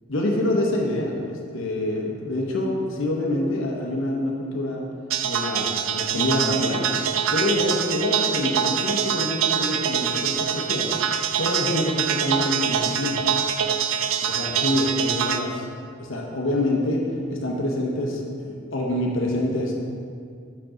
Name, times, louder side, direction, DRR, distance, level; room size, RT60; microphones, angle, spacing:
voice 1, 0.1-4.8 5.2-6.9 7.3-10.9 11.4-13.2 14.2-15.7 16.0-19.7, left 1 dB, 75° left, -1 dB, 0.8 m, -26 dB
sound 1, 5.1-15.4, right 8 dB, 85° right, 0.4 m, -24 dB
6.0 x 4.9 x 3.7 m, 2.2 s
head